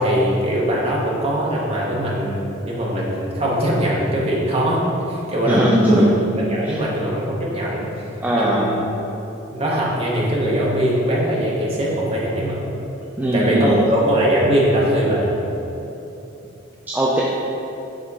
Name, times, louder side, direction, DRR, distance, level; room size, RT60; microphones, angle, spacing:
voice 1, 0.0-6.1 6.4-7.9 8.3-8.8 9.5-12.6 13.3-15.4, equal, 30° right, -4 dB, 1.0 m, -21 dB
voice 2, 5.5-6.0 6.6-6.8 8.2-8.7 13.2-13.8 16.9-17.2, right 1 dB, 10° right, -5 dB, 0.3 m, -19 dB
5.1 x 3.5 x 5.3 m, 2.9 s
head